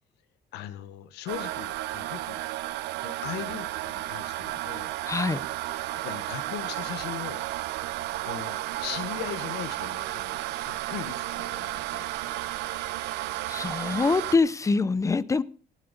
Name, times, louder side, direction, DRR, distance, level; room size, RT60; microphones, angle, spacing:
voice 1, 0.5-2.4 3.0-4.9 5.9-7.4 8.2-12.1, left 11 dB, 90° left, 12 dB, 1.2 m, -39 dB
sound 1, 1.3-14.4, right 16 dB, 90° right, 0.7 m, -33 dB
voice 2, 5.1-5.4 12.7-12.8 13.5-15.4, left 4 dB, 20° left, 18 dB, 0.6 m, -25 dB
17.0 x 8.1 x 5.2 m, 0.43 s
cardioid pair, 110°, 17 cm